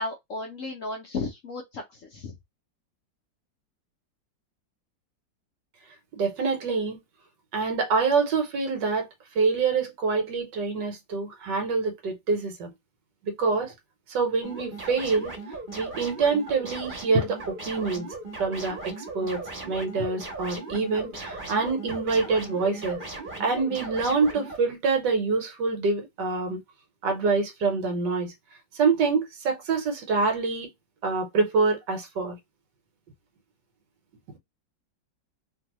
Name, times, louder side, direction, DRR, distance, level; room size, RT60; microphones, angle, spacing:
voice 1, 0.0-2.4, left 3 dB, 70° left, 0.7 m, -34 dB
voice 2, 6.1-7.0 7.5-9.1 9.3-12.7 13.2-13.7 14.1-15.4 15.7-18.1 18.4-23.0 23.4-26.6 27.0-28.3 28.7-30.7 31.0-32.4 34.3-34.4, right 4 dB, 75° right, 1.5 m, -26 dB
sound 1, 14.4-24.6, right 2 dB, 30° right, 1.3 m, -38 dB
3.0 x 2.7 x 2.9 m
omnidirectional pair, 2.0 m